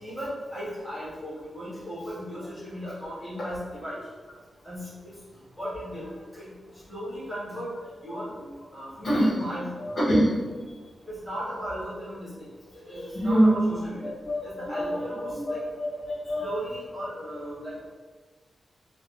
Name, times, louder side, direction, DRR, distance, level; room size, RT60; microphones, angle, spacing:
voice 1, 0.0-4.0 4.6-5.2 5.6-7.8 8.0-8.3 8.7-9.9 11.1-12.5 12.7-14.1 14.4-15.6 16.4-17.9, equal, 5° left, -10 dB, 1.4 m, -36 dB
voice 2, 9.0-9.4 9.8-10.4 13.1-13.7 14.0-14.4 14.7-15.0 15.3-16.5, equal, 50° left, -9 dB, 0.8 m, -24 dB
3.3 x 2.0 x 2.3 m, 1.4 s
cardioid pair, 85°, 0 cm